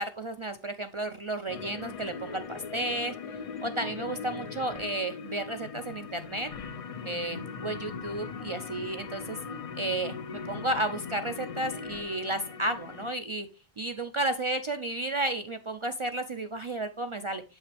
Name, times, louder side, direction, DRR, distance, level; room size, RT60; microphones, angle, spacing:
voice 1, 0.0-3.1 3.6-6.5 7.1-9.4 9.7-10.1 10.5-13.5 13.8-17.4, right 2 dB, 55° right, 8 dB, 0.3 m, -32 dB
sound 1, 1.5-13.1, left 5 dB, 60° left, 0.3 m, -40 dB
7.5 x 5.4 x 3.3 m, 0.31 s
omnidirectional pair, 1.1 m